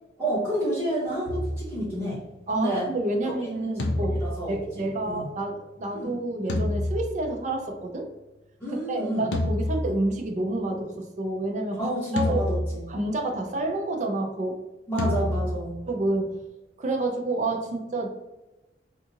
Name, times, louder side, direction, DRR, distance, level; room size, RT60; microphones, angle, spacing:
voice 1, 0.2-2.2 2.5-2.9 3.2-3.3 4.2-5.3 5.9-6.1 8.6-9.3 11.8-12.8 14.9-15.7, right 1 dB, 10° left, -14 dB, 1.4 m, -29 dB
sound 1, 1.3-2.6 3.8-5.5 6.5-7.8 9.3-10.7 12.2-13.3 15.0-16.4, left 1 dB, 70° left, 0.5 m, -30 dB
voice 2, 2.5-4.2 4.5-8.1 8.9-12.4 12.9-14.6 15.9-16.4 16.8-18.1, right 2 dB, 45° right, 3 dB, 0.5 m, -29 dB
3.5 x 2.4 x 2.8 m, 1.0 s
head